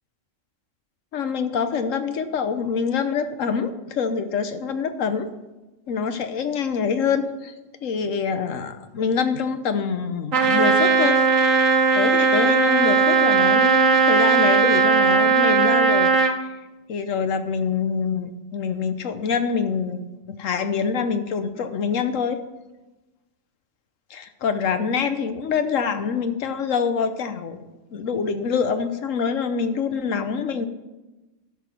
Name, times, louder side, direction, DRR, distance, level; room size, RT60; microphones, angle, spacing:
voice 1, 1.1-5.3 5.9-7.5 7.8-11.2 11.9-16.1 16.9-22.4 24.1-27.6 27.9-30.7, left 6 dB, 80° left, 10 dB, 1.3 m, -25 dB
Trumpet, 10.3-16.4, right 5 dB, 80° right, 1.4 m, -18 dB
12.5 x 7.1 x 5.9 m, 1.1 s
omnidirectional pair, 1.3 m